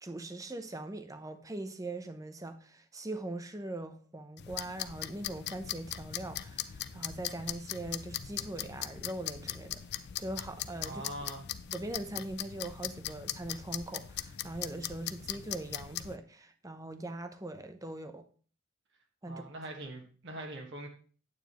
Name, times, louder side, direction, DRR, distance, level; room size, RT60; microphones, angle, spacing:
voice 1, 0.0-11.0 11.7-18.2 19.2-19.4, right 2 dB, 15° right, 9 dB, 0.7 m, -41 dB
sound 1, 4.4-16.2, left 11 dB, 50° left, 0.4 m, -40 dB
voice 2, 10.8-11.5 19.2-20.9, right 1 dB, 55° right, 2 dB, 1.5 m, -42 dB
9.3 x 8.8 x 3.0 m, 0.41 s
head